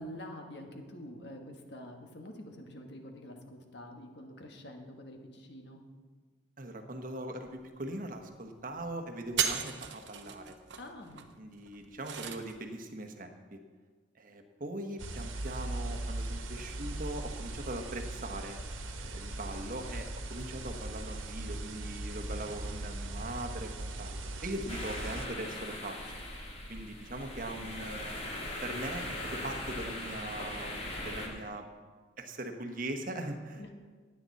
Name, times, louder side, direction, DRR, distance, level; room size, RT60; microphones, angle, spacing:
voice 1, 0.0-5.8 10.8-11.3 33.6-33.7, equal, 60° left, 3 dB, 1.6 m, -46 dB
voice 2, 6.6-10.6 11.4-13.6 14.1-18.6 19.0-26.1 26.7-28.2 28.6-31.6 32.2-33.7, right 1 dB, 45° right, 5 dB, 1.2 m, -41 dB
sound 1, 7.5-7.6 7.8-8.2 8.6-8.9 9.2-12.6, right 8 dB, 65° right, 1.0 m, -36 dB
sound 2, 15.0-25.3, right 2 dB, 85° right, 1.3 m, -39 dB
sound 3, 24.7-31.3, left 1 dB, 30° left, 2.2 m, -40 dB
16.5 x 9.7 x 4.2 m, 1.5 s
head